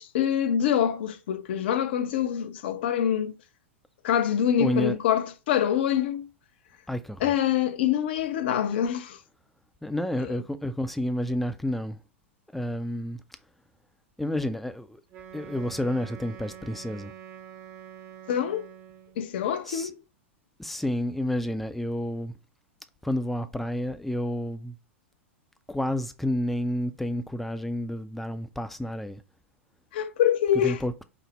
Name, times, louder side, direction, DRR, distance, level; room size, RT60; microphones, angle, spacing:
voice 1, 0.0-3.3 4.0-6.3 7.2-9.2 10.2-10.4 18.3-18.7 19.2-20.0 29.9-30.8, left 9 dB, 55° left, 0.5 m, -25 dB
voice 2, 4.6-5.0 6.9-7.3 9.8-12.0 12.5-13.2 14.2-15.0 15.3-17.1 19.7-19.9 20.6-22.3 23.0-24.8 25.7-29.2 30.6-31.0, left 1 dB, ahead, 0.4 m, -30 dB
Wind instrument woodwind instrument, 15.1-19.3, right 9 dB, 35° right, 0.7 m, -46 dB
5.2 x 2.0 x 4.0 m
figure-of-eight pair, 95°, 7 cm